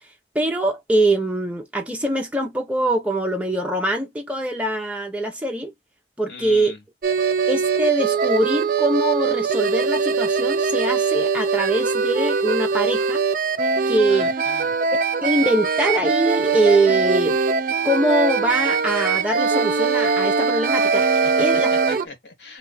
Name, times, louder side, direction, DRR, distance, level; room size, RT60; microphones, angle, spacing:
voice 1, 0.3-5.7 6.2-6.7 7.5-13.2 13.9-14.3 15.2-17.4 17.8-21.7, right 1 dB, 5° right, 0.6 m, -23 dB
voice 2, 6.3-6.8 14.1-14.8 21.2-21.3 21.9-22.6, left 4 dB, 80° left, 1.7 m, -39 dB
sound 1, 7.0-22.0, right 5 dB, 50° right, 0.4 m, -21 dB
2.8 x 2.3 x 4.0 m
head